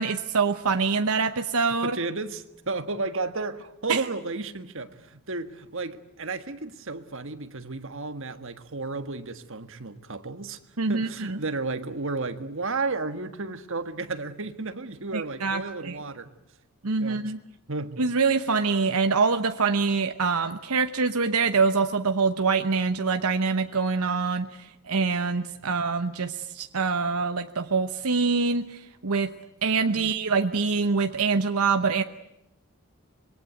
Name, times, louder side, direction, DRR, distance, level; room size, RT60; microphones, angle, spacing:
voice 1, 0.0-2.0 3.9-4.0 10.8-11.4 15.1-16.0 16.8-17.4 18.0-29.3 29.6-32.0, right 4 dB, 80° right, 1.0 m, -25 dB
voice 2, 1.8-10.6 10.9-16.3 17.0-17.3 17.7-18.1 25.6-25.7 30.0-30.1, right 3 dB, 60° right, 1.7 m, -33 dB
26.0 x 22.5 x 9.2 m
head